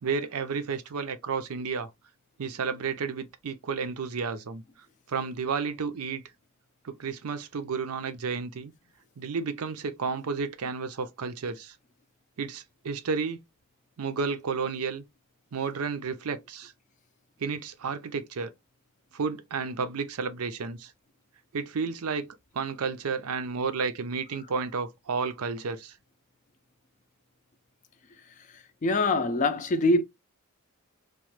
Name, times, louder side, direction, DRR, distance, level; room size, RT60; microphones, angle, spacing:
voice 1, 0.0-1.9 2.4-4.6 5.1-6.2 6.8-8.7 9.2-11.8 12.4-13.4 14.0-15.0 15.5-16.7 17.4-18.5 19.1-20.9 21.5-22.3 22.5-25.9, right 5 dB, 90° right, 0.5 m, -32 dB
voice 2, 28.5-30.0, left 2 dB, 35° left, 0.3 m, -24 dB
3.0 x 2.1 x 3.1 m
head